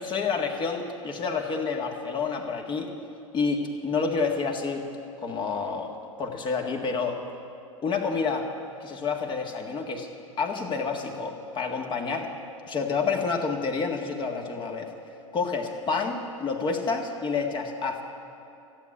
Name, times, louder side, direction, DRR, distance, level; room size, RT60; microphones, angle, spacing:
voice 1, 0.0-2.9 3.3-4.8 5.2-5.9 6.2-7.2 7.8-8.5 8.8-10.1 10.4-12.3 12.7-14.9 15.3-18.0, left 4 dB, 30° left, 3 dB, 1.7 m, -29 dB
14.5 x 8.4 x 9.9 m, 2.7 s
figure-of-eight pair, 85°, 17 cm